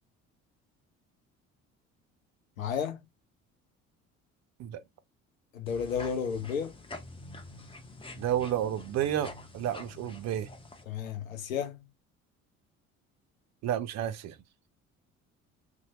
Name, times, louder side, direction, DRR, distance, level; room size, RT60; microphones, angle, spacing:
voice 1, 2.6-3.0 5.5-6.8 10.9-11.9, left 7 dB, 90° left, 0.6 m, -32 dB
sound 1, 5.7-10.8, left 2 dB, 15° left, 0.7 m, -46 dB
voice 2, 8.2-10.5 13.6-14.4, right 11 dB, 45° right, 0.5 m, -31 dB
2.7 x 2.2 x 2.8 m
figure-of-eight pair, 55°, 39 cm